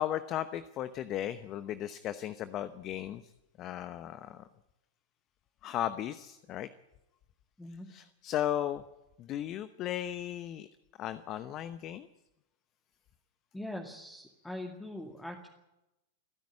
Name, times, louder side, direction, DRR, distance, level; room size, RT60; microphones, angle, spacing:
voice 1, 0.0-3.3 3.6-4.5 5.6-6.7 7.9-8.8 9.2-10.7 11.0-12.1, left 11 dB, 35° left, 13 dB, 0.9 m, -36 dB
voice 2, 13.5-15.5, left 1 dB, 5° left, 2 dB, 2.3 m, -42 dB
29.5 x 10.5 x 9.9 m, 0.96 s
hypercardioid pair, 100°, 0 cm